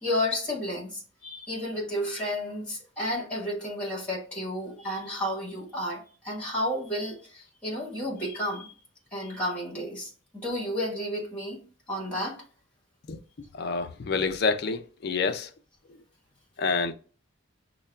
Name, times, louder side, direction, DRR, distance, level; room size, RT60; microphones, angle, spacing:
voice 1, 0.0-8.7 9.1-11.6 11.9-12.4, left 1 dB, 5° left, 1.1 m, -32 dB
voice 2, 13.6-15.5 16.6-16.9, left 4 dB, 50° left, 0.4 m, -27 dB
6.3 x 2.2 x 2.2 m
head